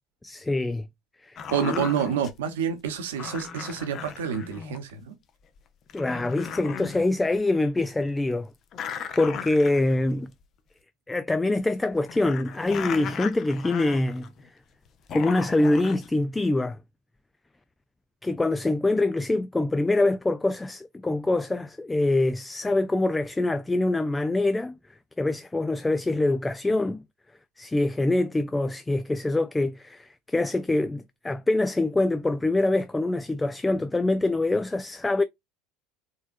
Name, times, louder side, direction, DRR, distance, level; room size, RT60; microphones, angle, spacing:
voice 1, 0.2-0.9 1.2-1.8 5.9-8.5 9.2-10.3 11.1-14.3 15.1-16.8 18.2-24.8 25.2-27.0 27.6-35.2, left 2 dB, 10° left, 0.3 m, -25 dB
sound 1, 1.4-2.4 3.2-4.9 5.6-5.7 5.9-7.1 7.3-7.4 8.7-10.1 10.4-10.5 11.6-14.5 14.9-16.1, left 7 dB, 40° left, 0.7 m, -37 dB
voice 2, 1.5-5.1, right 8 dB, 70° right, 1.0 m, -28 dB
4.3 x 3.5 x 2.5 m
figure-of-eight pair, 70°, 0 cm